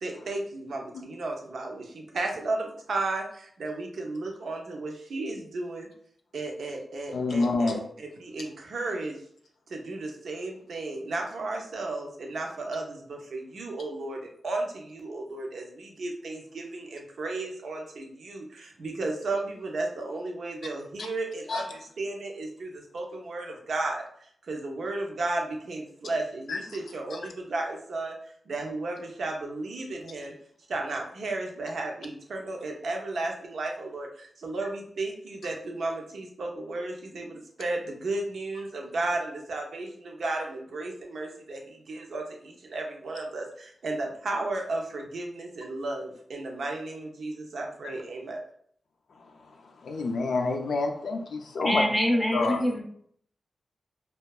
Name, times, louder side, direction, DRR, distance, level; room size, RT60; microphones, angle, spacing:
voice 1, 0.0-5.9 6.3-9.2 9.7-28.2 28.5-30.3 30.7-48.4, right 2 dB, 70° right, 1 dB, 0.5 m, -34 dB
voice 2, 7.1-7.8 21.5-21.6 26.5-26.6 27.1-27.2 47.8-47.9 49.2-51.8 52.3-52.7, left 3 dB, 80° left, 3 dB, 0.3 m, -28 dB
voice 3, 51.6-52.8, equal, 5° left, -1 dB, 0.5 m, -25 dB
2.7 x 2.2 x 2.3 m, 0.63 s
wide cardioid pair, 150°, 0 cm